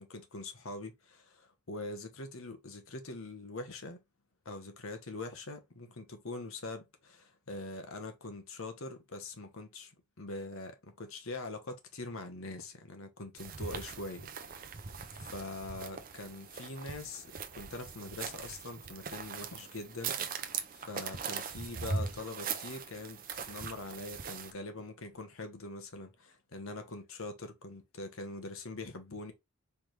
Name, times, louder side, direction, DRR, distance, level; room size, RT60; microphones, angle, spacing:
voice 1, 0.0-4.0 4.4-14.8 15.3-29.3, left 2 dB, 70° left, 1.1 m, -43 dB
sound 1, 13.4-24.5, right 5 dB, 40° right, 0.6 m, -40 dB
4.5 x 3.5 x 3.1 m
head